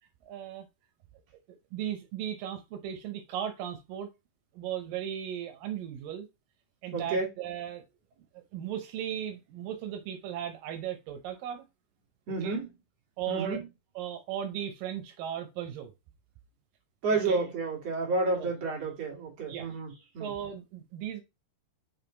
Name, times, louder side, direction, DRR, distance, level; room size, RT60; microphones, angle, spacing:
voice 1, 0.2-0.7 1.5-4.1 4.5-6.3 6.8-7.8 8.2-11.6 12.4-12.6 13.2-13.6 14.0-15.9 17.1-17.4 18.4-18.5 19.5-19.7 20.2-21.2, right 10 dB, 85° right, 2.6 m, -37 dB
voice 2, 6.9-7.3 12.3-12.7 13.3-13.7 17.0-20.3, right 3 dB, 50° right, 3.3 m, -30 dB
6.5 x 3.7 x 3.9 m
omnidirectional pair, 3.9 m